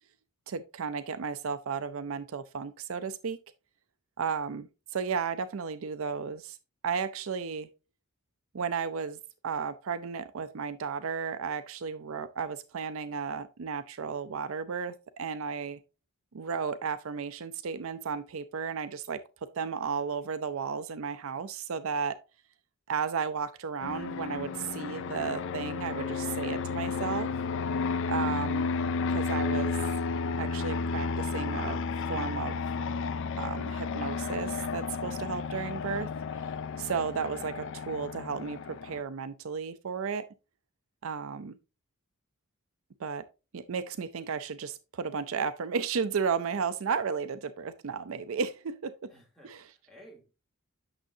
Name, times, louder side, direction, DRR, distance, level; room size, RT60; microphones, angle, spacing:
voice 1, 0.5-3.4 4.2-6.6 6.8-7.7 8.5-15.8 16.3-19.2 19.6-22.2 22.9-27.3 28.1-28.7 29.1-29.8 30.4-32.6 33.4-36.1 36.8-40.3 41.0-41.6 43.0-43.2 43.5-48.9 49.4-49.6, right 6 dB, 65° right, 0.5 m, -34 dB
Fixed-wing aircraft airplane, 23.8-39.0, left 4 dB, 55° left, 0.4 m, -32 dB
voice 2, 49.1-50.3, equal, ahead, 2.9 m, -55 dB
8.8 x 6.4 x 2.7 m
head